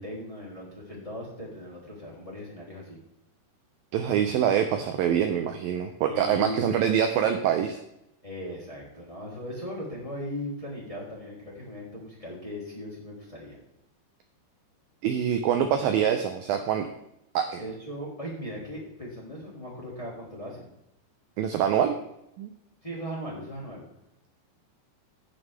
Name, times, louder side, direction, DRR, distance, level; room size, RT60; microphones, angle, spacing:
voice 1, 0.0-3.0 6.1-7.0 8.2-13.6 17.6-20.7 21.8-21.9 22.8-23.8, equal, 10° left, -5 dB, 2.5 m, -38 dB
voice 2, 3.9-7.8 15.0-16.9 17.3-17.6 21.4-22.0 22.4-22.5, right 9 dB, 85° right, 6 dB, 2.0 m, -25 dB
17.0 x 6.5 x 3.5 m, 0.83 s
omnidirectional pair, 5.0 m